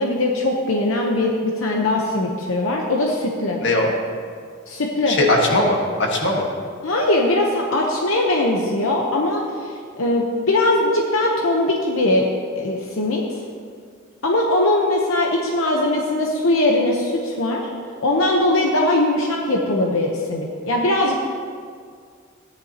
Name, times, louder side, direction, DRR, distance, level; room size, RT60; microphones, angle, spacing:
voice 1, 0.0-3.6 4.7-5.2 6.8-12.3 12.6-13.2 14.2-17.7 18.0-21.2, left 1 dB, 90° left, 0 dB, 0.9 m, -20 dB
voice 2, 3.6-3.9 5.1-6.5, left 2 dB, 60° left, 0 dB, 1.5 m, -19 dB
14.0 x 10.0 x 2.9 m, 2.1 s
head